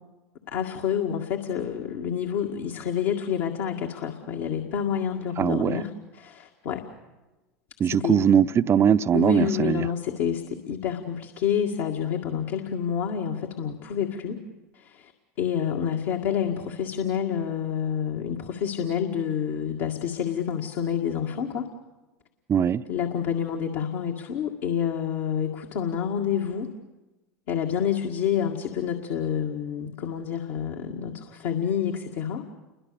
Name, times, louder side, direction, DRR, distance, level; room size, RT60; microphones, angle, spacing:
voice 1, 0.5-6.8 7.8-8.2 9.1-14.4 14.7-15.1 15.4-21.7 22.9-26.7 27.5-32.4, left 8 dB, 60° left, 2.0 m, -28 dB
voice 2, 5.4-5.8 7.8-9.9 22.5-22.8, right 8 dB, 30° right, 0.7 m, -21 dB
28.5 x 22.5 x 7.0 m
hypercardioid pair, 85°, 9 cm